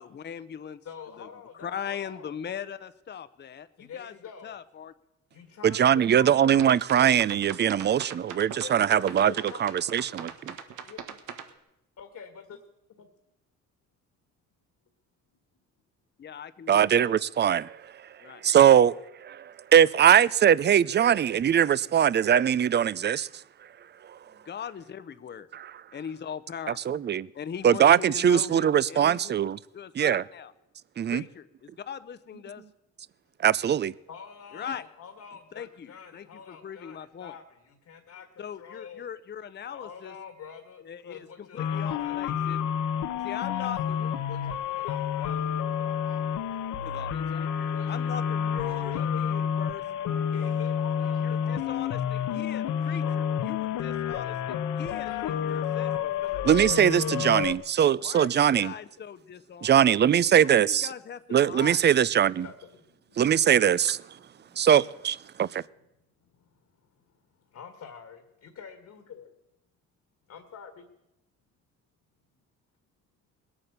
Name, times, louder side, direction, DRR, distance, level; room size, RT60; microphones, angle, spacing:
voice 1, 0.0-0.8 1.2-1.3 1.6-4.1 4.4-4.9 16.2-17.1 18.2-18.4 24.3-25.5 25.9-27.0 27.3-29.2 29.7-30.5 31.1-32.6 34.5-34.8 35.6-37.3 38.4-40.1 40.9-42.7 43.2-44.1 46.8-49.8 51.2-54.4 54.8-55.9 56.2-56.4 58.0-59.8 60.4-61.9, left 8 dB, 35° left, 0.7 m, -40 dB
voice 2, 0.8-2.3 3.8-4.6 5.3-6.7 8.6-8.9 9.3-9.6 10.8-11.2 12.0-12.6 13.0-13.1 19.7-19.8 34.1-39.1 39.7-42.2 43.5-46.2 47.7-49.4 50.3-53.5 54.9-57.2 62.4-63.3 64.3-64.6 65.8-65.9 66.2-69.3 70.3-70.9, left 7 dB, 60° left, 1.8 m, -46 dB
voice 3, 5.6-9.3 9.6-10.6 16.7-17.8 18.4-18.9 19.2-23.3 25.5-25.7 26.9-27.3 27.6-29.6 30.0-30.2 31.0-31.2 33.4-33.9 56.5-58.7 59.6-60.9 61.3-62.5 63.2-64.0 64.6-65.6, right 9 dB, 35° right, 0.5 m, -21 dB
sound 1, 6.6-11.5, right 8 dB, 85° right, 1.6 m, -40 dB
sound 2, 41.6-57.5, left 8 dB, 85° left, 1.1 m, -29 dB
20.0 x 8.8 x 6.7 m
cardioid pair, 90°, 30 cm